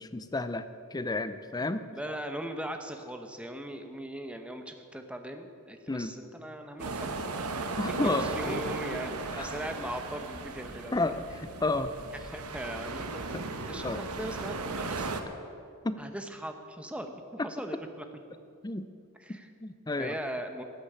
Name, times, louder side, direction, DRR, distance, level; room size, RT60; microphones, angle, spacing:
voice 1, 0.0-1.8 5.9-6.2 7.8-8.6 9.3-9.5 10.9-11.9 13.8-14.0 15.8-16.0 17.4-17.5 18.6-18.9 19.6-20.2, left 2 dB, 15° left, 11 dB, 0.5 m, -31 dB
voice 2, 1.9-7.3 8.2-10.9 12.3-15.1 16.0-18.0 19.2-19.5 20.0-20.6, right 1 dB, 5° right, 6 dB, 0.9 m, -39 dB
sound 1, 6.8-15.2, right 3 dB, 85° right, 1.1 m, -36 dB
14.0 x 8.5 x 8.7 m, 2.5 s
head